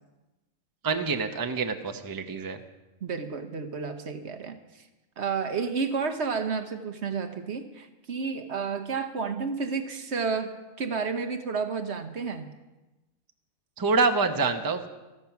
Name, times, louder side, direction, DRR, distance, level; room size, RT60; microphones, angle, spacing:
voice 1, 0.8-2.6 13.8-14.9, right 4 dB, 20° right, 6 dB, 0.7 m, -26 dB
voice 2, 3.0-4.6 5.2-12.5, right 5 dB, 55° right, 8 dB, 1.2 m, -31 dB
14.0 x 13.5 x 5.9 m, 1.1 s
omnidirectional pair, 1.4 m